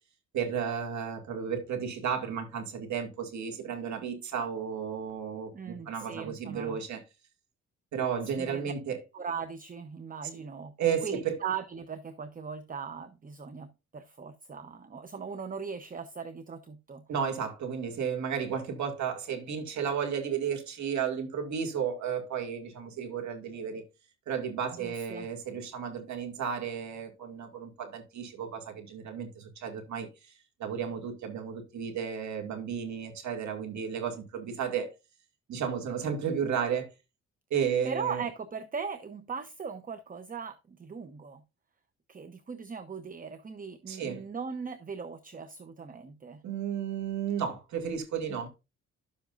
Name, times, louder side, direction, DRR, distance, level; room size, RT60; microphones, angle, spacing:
voice 1, 0.3-7.0 7.9-9.0 10.8-11.4 17.1-23.8 24.3-30.1 30.6-34.9 35.5-36.9 37.5-38.2 43.9-44.2 46.4-48.5, right 7 dB, 70° right, 2.3 m, -33 dB
voice 2, 5.5-6.8 8.4-8.7 9.1-17.0 24.7-25.3 37.6-41.4 42.1-46.4 48.3-48.4, right 6 dB, 30° right, 0.8 m, -39 dB
11.5 x 7.3 x 2.6 m
cardioid pair, 90°, 30 cm